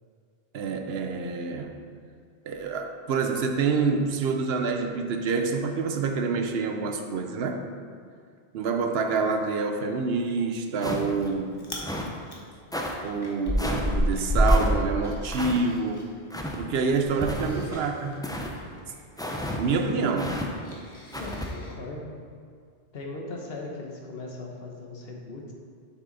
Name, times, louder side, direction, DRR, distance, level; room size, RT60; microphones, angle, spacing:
voice 1, 0.5-1.8 2.5-7.7 8.5-11.6 13.0-16.0 16.6-18.2 19.6-20.5, right 4 dB, 75° right, 6 dB, 0.9 m, -27 dB
Chewing mastication, 10.8-11.3 11.6-11.9 12.3-16.0 16.3-21.7, equal, 25° left, 1.0 m, -29 dB
sound 1, 10.8-11.3 11.8-12.2 12.7-12.9 13.6-13.9 14.5-14.7 15.3-15.6 16.3-16.6 17.2-17.7 18.2-18.5 19.2-19.6 20.2-20.5 21.1-21.5, left 1 dB, 5° left, 0.4 m, -32 dB
voice 2, 21.1-22.1 22.9-25.5, left 2 dB, 70° left, 0 dB, 1.3 m, -38 dB
7.4 x 5.9 x 3.9 m, 2.2 s
omnidirectional pair, 1.1 m